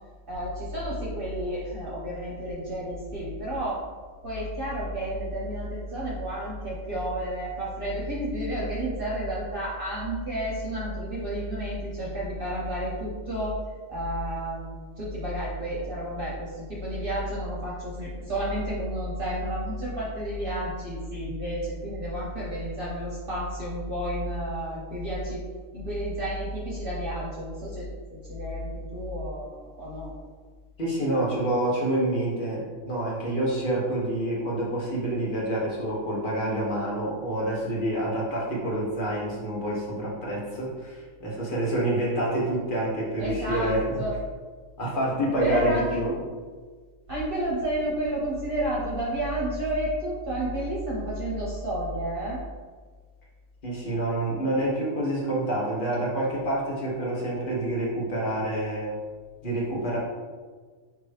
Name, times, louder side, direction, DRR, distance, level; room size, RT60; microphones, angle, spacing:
voice 1, 0.3-3.8 4.2-13.6 13.9-25.4 25.7-30.1 43.2-44.1 45.4-45.8 47.1-52.4, right 1 dB, 45° right, -7 dB, 1.0 m, -31 dB
voice 2, 30.8-43.8 44.8-46.1 53.6-58.9 59.4-60.0, right 1 dB, 40° left, -5 dB, 1.3 m, -27 dB
5.5 x 2.9 x 3.2 m, 1.5 s
omnidirectional pair, 1.4 m